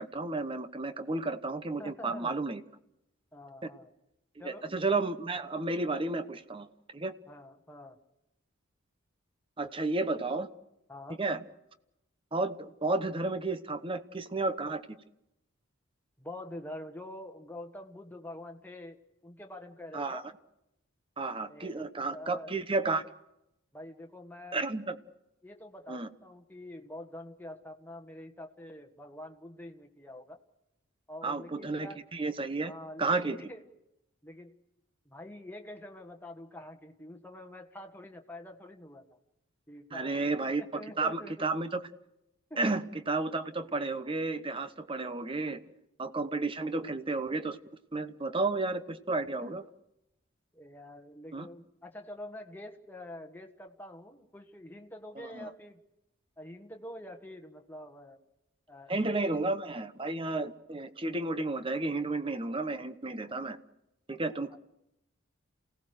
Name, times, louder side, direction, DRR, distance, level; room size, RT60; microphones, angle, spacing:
voice 1, 0.0-2.6 3.6-3.7 4.4-6.7 6.9-7.1 9.6-10.5 11.2-11.4 12.3-14.8 19.9-20.2 21.2-23.0 24.5-25.0 25.9-26.1 31.2-32.7 33.0-33.4 39.9-41.8 42.6-45.6 46.0-47.6 47.9-49.6 51.3-51.5 55.3-55.5 58.9-63.6 64.1-64.6, right 3 dB, 25° right, 11 dB, 1.0 m, -32 dB
voice 2, 1.8-2.4 3.3-3.9 4.4-4.7 7.3-8.0 10.1-10.4 10.9-11.2 16.2-19.0 19.2-20.3 21.5-22.5 23.7-24.7 25.4-30.4 31.1-32.0 32.6-33.6 34.2-34.5 35.0-39.0 39.7-41.5 42.5-42.7 49.4-49.6 50.5-55.8 56.4-58.2 58.7-59.4 64.5-64.6, left 1 dB, 10° left, 4 dB, 1.5 m, -46 dB
28.5 x 17.5 x 6.5 m, 0.86 s
head